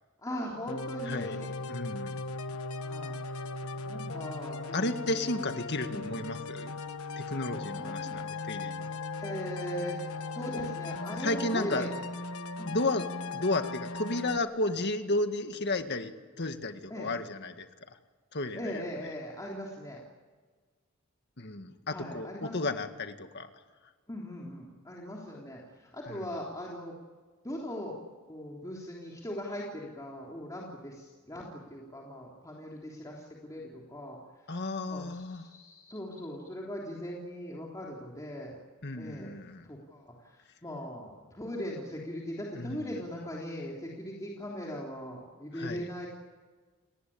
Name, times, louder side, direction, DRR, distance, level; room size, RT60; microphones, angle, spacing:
voice 1, 0.2-1.5 2.8-3.5 3.8-6.3 7.7-8.3 9.2-10.0 10.3-12.0 12.6-12.8 16.9-17.1 18.5-20.0 21.9-22.7 24.1-26.9 27.4-28.0 28.3-34.5 34.9-38.6 38.9-39.4 39.6-46.1, equal, 15° left, -3 dB, 3.4 m, -40 dB
sound 1, 0.7-14.4, left 3 dB, 80° left, 1.4 m, -38 dB
voice 2, 1.1-1.4 1.7-2.2 4.7-6.8 7.2-8.9 11.0-11.9 12.7-13.1 13.3-18.0 18.3-18.8 21.4-23.5 26.1-26.4 34.5-35.4 38.8-39.7 42.5-43.0 45.5-45.9, left 2 dB, 50° left, 7 dB, 2.0 m, -33 dB
29.5 x 20.0 x 8.7 m, 1.4 s
head